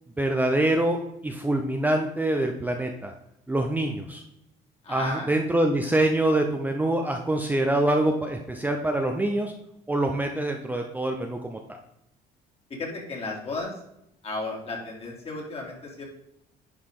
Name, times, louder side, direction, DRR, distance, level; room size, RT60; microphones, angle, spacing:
voice 1, 0.2-3.1 3.5-4.2 4.9-9.5 9.9-11.6, right 1 dB, 10° right, 3 dB, 0.7 m, -25 dB
voice 2, 4.8-5.3 12.7-13.8 14.2-16.0, left 2 dB, 35° left, -1 dB, 2.8 m, -34 dB
10.5 x 4.8 x 3.7 m, 0.80 s
cardioid pair, 110°, 17 cm